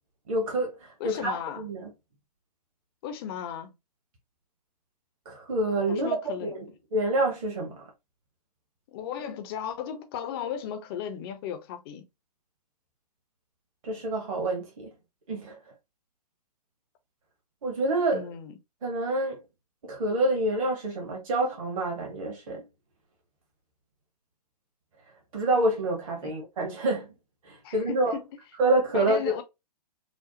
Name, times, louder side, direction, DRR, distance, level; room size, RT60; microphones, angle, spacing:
voice 1, 0.3-1.9 5.2-7.8 13.8-14.9 15.3-15.6 17.6-18.3 18.8-19.4 19.8-22.6 25.3-27.1 27.4-28.2 28.6-29.2, right 2 dB, 55° right, 1.5 m, -27 dB
voice 2, 1.0-1.6 3.0-3.7 5.9-6.6 8.9-12.1 18.1-18.5 26.2-26.3 27.6-28.2 28.9-29.4, left 8 dB, 35° left, 0.7 m, -35 dB
5.0 x 2.1 x 2.8 m
figure-of-eight pair, 115°, 21 cm